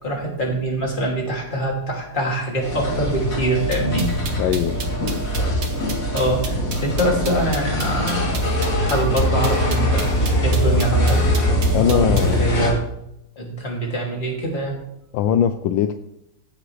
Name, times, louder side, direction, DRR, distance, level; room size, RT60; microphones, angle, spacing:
voice 1, 0.0-4.4 6.1-8.3 8.8-10.1 10.4-11.2 11.8-12.8 13.4-14.8, right 1 dB, 25° left, -1 dB, 2.6 m, -24 dB
sound 1, 2.6-12.7, equal, 60° left, 3.6 m, -22 dB
sound 2, 3.7-12.3, right 5 dB, 55° right, 1.8 m, -33 dB
voice 2, 4.4-4.8 11.7-12.4 15.1-15.9, left 9 dB, 80° left, 9 dB, 1.3 m, -20 dB
15.5 x 8.0 x 3.2 m, 0.79 s
omnidirectional pair, 2.2 m